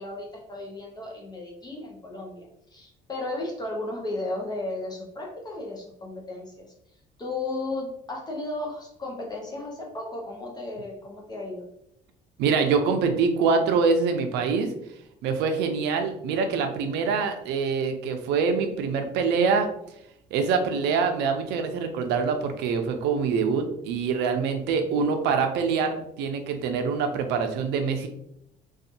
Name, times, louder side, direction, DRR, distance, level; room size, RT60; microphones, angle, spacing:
voice 1, 0.0-6.7 7.2-11.7, left 2 dB, 25° left, -1 dB, 0.6 m, -34 dB
voice 2, 12.4-14.7 15.2-19.7 20.3-28.1, right 5 dB, 85° right, 6 dB, 0.5 m, -25 dB
2.5 x 2.3 x 2.7 m, 0.76 s
cardioid pair, 110°, 17 cm